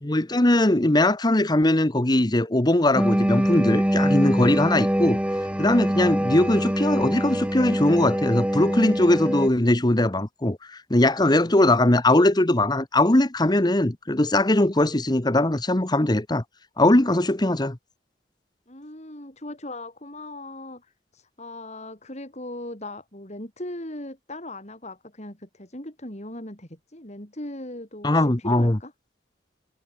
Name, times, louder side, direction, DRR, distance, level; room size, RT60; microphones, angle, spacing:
voice 1, 0.0-5.2 5.6-10.6 10.9-16.4 16.8-17.8 28.0-28.8, left 1 dB, 25° left, 1.2 m, -20 dB
sound 1, 2.9-9.5, equal, 5° right, 1.5 m, -24 dB
voice 2, 18.7-28.9, left 1 dB, 40° left, 6.7 m, -38 dB
head